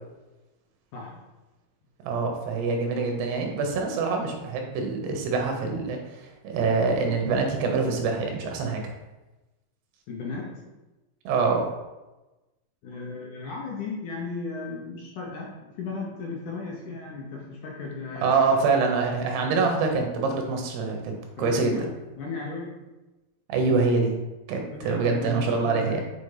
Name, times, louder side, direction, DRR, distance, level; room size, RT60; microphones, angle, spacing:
voice 1, 0.9-1.2 10.1-10.7 12.8-18.5 21.4-21.9 22.2-22.8 24.7-26.0, left 4 dB, 70° left, -2 dB, 2.0 m, -36 dB
voice 2, 2.0-8.9 11.2-11.7 18.2-21.1 21.4-21.9 23.5-24.2 24.5-26.0, right 4 dB, 90° right, 2 dB, 3.3 m, -25 dB
7.2 x 4.6 x 5.0 m, 1.1 s
omnidirectional pair, 4.6 m